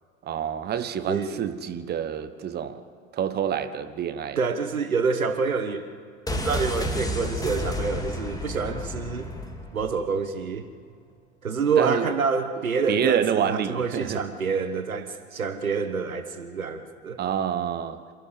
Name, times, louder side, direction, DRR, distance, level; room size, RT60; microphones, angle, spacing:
voice 1, 0.2-2.8 3.1-4.4 11.8-12.0 12.9-14.2 17.2-18.0, right 9 dB, 25° right, 1.1 m, -27 dB
voice 2, 1.1-1.4 4.4-5.9 6.3-9.3 9.7-10.7 11.4-17.2, right 5 dB, 75° right, 1.6 m, -27 dB
sound 1, 6.3-10.0 10.3-10.4, left 1 dB, 10° left, 2.4 m, -31 dB
28.0 x 14.0 x 8.1 m
figure-of-eight pair, 85°, 42 cm